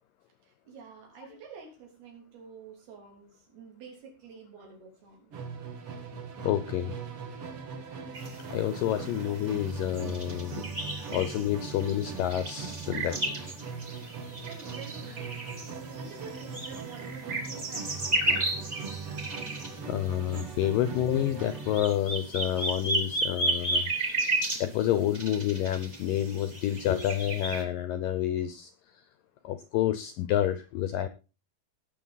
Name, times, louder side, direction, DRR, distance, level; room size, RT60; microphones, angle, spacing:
voice 1, 0.4-5.3 14.5-15.4 15.7-18.5, right 5 dB, 70° right, 1 dB, 5.2 m, -48 dB
Musical instrument, 5.3-22.0, right 5 dB, 50° right, 1.9 m, -40 dB
voice 2, 6.4-6.9 8.5-10.6 11.1-13.3 19.9-24.2 24.6-28.7 29.4-31.1, left 12 dB, 80° left, 12 dB, 2.0 m, -29 dB
sound 1, 8.1-27.6, right 2 dB, 25° right, 2.3 m, -34 dB
18.5 x 7.1 x 4.1 m, 0.32 s
omnidirectional pair, 4.7 m